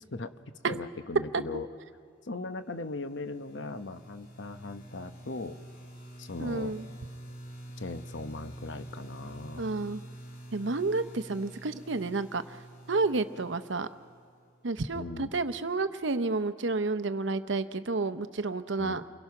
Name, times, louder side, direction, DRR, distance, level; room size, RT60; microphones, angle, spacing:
voice 1, 0.6-1.7 2.2-5.6 6.2-6.7 7.8-9.6 14.9-15.3 18.8-19.0, left 3 dB, 65° left, 9 dB, 1.0 m, -39 dB
sound 1, 2.7-14.5, right 1 dB, 50° left, 3.4 m, -47 dB
voice 2, 6.4-6.9 9.6-10.0 10.5-12.6 12.9-13.9 14.6-19.0, right 3 dB, 65° right, 11 dB, 0.8 m, -30 dB
29.0 x 21.5 x 5.9 m, 2.1 s
head